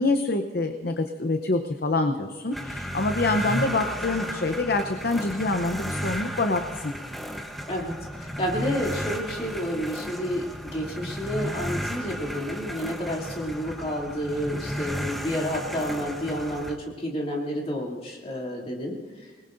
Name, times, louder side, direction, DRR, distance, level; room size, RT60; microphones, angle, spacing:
voice 1, 0.0-6.9, left 2 dB, 55° left, 6 dB, 0.8 m, -26 dB
sound 1, 2.5-16.8, equal, ahead, 1.0 m, -34 dB
voice 2, 7.7-19.3, equal, 35° left, -2 dB, 2.8 m, -30 dB
25.5 x 20.5 x 2.6 m, 1.4 s
head